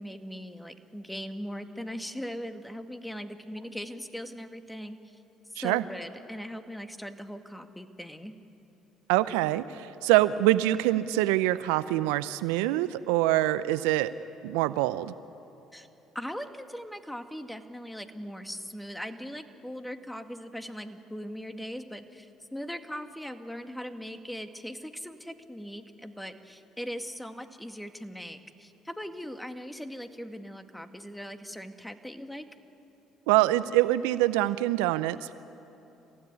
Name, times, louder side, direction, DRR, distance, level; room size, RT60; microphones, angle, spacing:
voice 1, 0.0-5.2 5.6-8.3 15.7-15.9 16.1-32.5, equal, 5° left, 7 dB, 2.0 m, -40 dB
voice 2, 9.1-14.1 14.4-15.1 33.3-35.3, right 15 dB, 75° right, 15 dB, 0.5 m, -25 dB
29.0 x 15.5 x 9.7 m, 3.0 s
hypercardioid pair, 60°, 0 cm